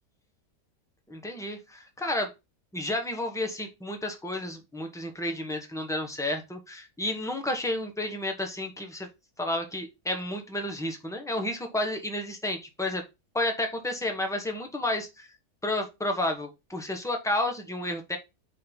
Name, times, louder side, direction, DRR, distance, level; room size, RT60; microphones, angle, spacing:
voice 1, 1.1-2.3 2.7-9.1 9.4-13.0 13.3-15.3 15.6-18.2, left 1 dB, ahead, 4 dB, 0.9 m, -31 dB
5.3 x 3.9 x 5.3 m, 0.24 s
omnidirectional pair, 1.7 m